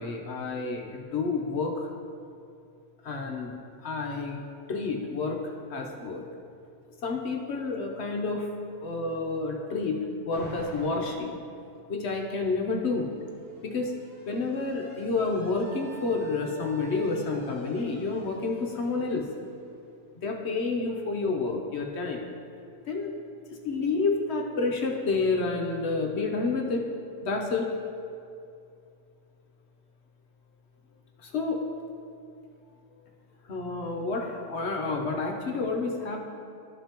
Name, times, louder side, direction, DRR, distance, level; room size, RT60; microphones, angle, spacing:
voice 1, 0.0-1.9 3.0-3.6 3.8-4.4 4.7-6.2 7.0-11.4 11.9-13.1 13.6-13.9 14.3-19.3 20.2-22.3 22.9-23.2 23.6-26.8 27.2-27.7 31.2-31.6 33.5-36.2, left 3 dB, 55° left, 1 dB, 0.8 m, -29 dB
Alarm, 10.3-11.3 12.5-20.2, right 1 dB, 70° right, 2.3 m, -48 dB
13.0 x 5.4 x 2.9 m, 2.5 s
omnidirectional pair, 1.8 m